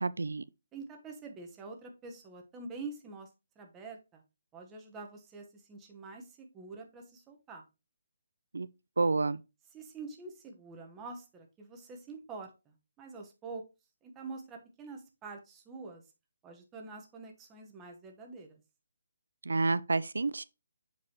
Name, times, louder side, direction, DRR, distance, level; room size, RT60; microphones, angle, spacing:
voice 1, 0.0-0.4 8.5-8.7 9.0-9.4 19.5-20.4, right 3 dB, 85° right, 0.3 m, -29 dB
voice 2, 0.7-3.3 3.6-4.2 4.5-7.6 9.7-13.6 14.0-16.0 16.4-18.6, right 3 dB, 15° right, 1.0 m, -46 dB
7.1 x 4.7 x 2.9 m
hypercardioid pair, 160°, 0 cm